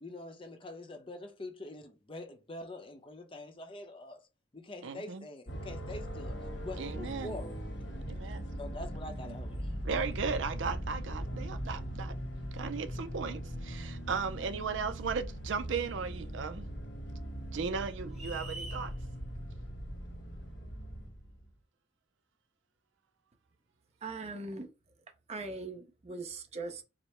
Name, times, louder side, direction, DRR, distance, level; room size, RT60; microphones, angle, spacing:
voice 1, 0.0-4.2 4.5-7.6 8.6-9.7, left 2 dB, 25° left, 0.7 m, -45 dB
voice 2, 4.8-5.2 6.8-7.3 8.1-8.4 9.8-12.2 12.5-16.7 17.5-18.9, right 5 dB, 75° right, 0.5 m, -36 dB
sound 1, 5.5-21.5, equal, 70° left, 1.3 m, -40 dB
sound 2, 18.1-18.9, right 2 dB, ahead, 1.0 m, -44 dB
voice 3, 24.0-24.7 25.3-26.8, right 3 dB, 35° right, 0.6 m, -40 dB
5.0 x 2.1 x 4.3 m
head